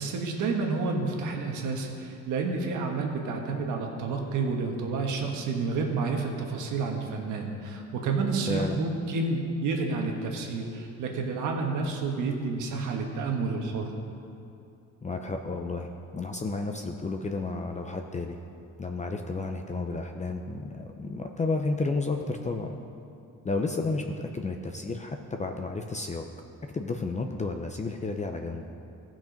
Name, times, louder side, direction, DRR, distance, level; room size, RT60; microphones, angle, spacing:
voice 1, 0.0-13.9, right 4 dB, 85° right, 2 dB, 1.5 m, -30 dB
voice 2, 8.5-8.8 15.0-18.4 18.8-22.8 23.4-26.3 26.7-28.7, left 3 dB, 25° left, 4 dB, 0.7 m, -32 dB
15.0 x 6.2 x 5.2 m, 2.7 s
cardioid pair, 90°, 30 cm